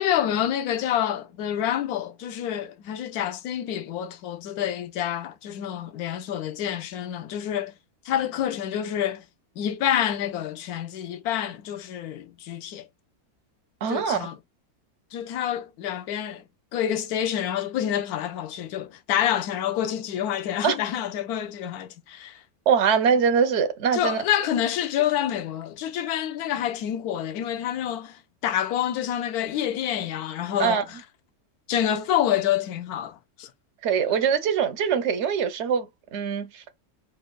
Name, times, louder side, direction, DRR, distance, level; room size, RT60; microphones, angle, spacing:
voice 1, 0.0-7.7 8.1-9.2 9.6-12.8 13.9-14.4 15.1-16.4 16.7-22.4 23.9-28.2 28.4-30.8 31.7-33.5, left 10 dB, 85° left, 1.1 m, -27 dB
voice 2, 13.8-14.2 20.6-20.8 22.7-24.2 30.6-30.8 33.8-35.9 36.1-36.6, right 7 dB, 65° right, 0.7 m, -23 dB
4.3 x 2.3 x 2.2 m
omnidirectional pair, 1.5 m